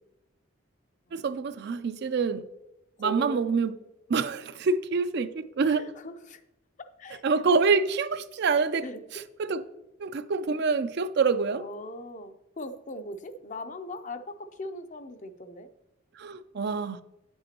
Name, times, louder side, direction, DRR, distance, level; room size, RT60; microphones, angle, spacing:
voice 1, 1.1-2.4 3.0-3.7 4.1-5.9 7.2-8.9 9.1-9.6 10.0-11.6 16.2-17.0, right 4 dB, 55° right, 0.4 m, -26 dB
voice 2, 1.6-2.0 3.0-3.4 4.2-4.3 5.6-6.4 6.8-7.2 8.8-9.0 11.6-15.7, left 1 dB, 40° left, 0.5 m, -40 dB
9.4 x 7.9 x 2.9 m
head